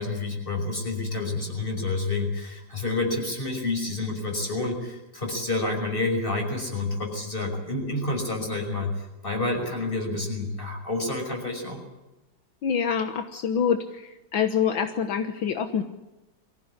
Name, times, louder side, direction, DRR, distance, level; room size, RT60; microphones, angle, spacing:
voice 1, 0.0-11.8, left 2 dB, 25° left, 3 dB, 5.9 m, -29 dB
voice 2, 12.6-13.8 14.3-15.8, left 7 dB, 75° left, 7 dB, 2.0 m, -25 dB
23.5 x 15.5 x 9.8 m, 1.0 s
omnidirectional pair, 2.2 m